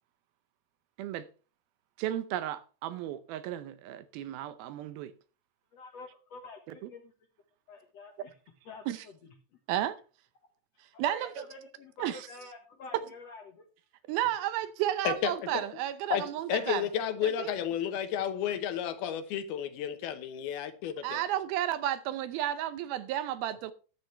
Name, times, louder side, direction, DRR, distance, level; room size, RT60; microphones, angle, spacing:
voice 1, 2.0-5.1 8.9-9.0 9.7-10.0 11.0-11.4 12.0-12.3 14.1-16.9 17.2-17.5 21.0-23.7, right 12 dB, 80° right, 2.4 m, -33 dB
voice 2, 5.7-7.1 7.7-8.3 8.7-9.3 10.9-13.6 16.5-16.9, left 3 dB, 60° left, 1.8 m, -48 dB
voice 3, 15.0-15.6 16.1-16.2 16.5-21.2, left 9 dB, 75° left, 2.9 m, -32 dB
13.0 x 10.5 x 3.3 m
omnidirectional pair, 4.6 m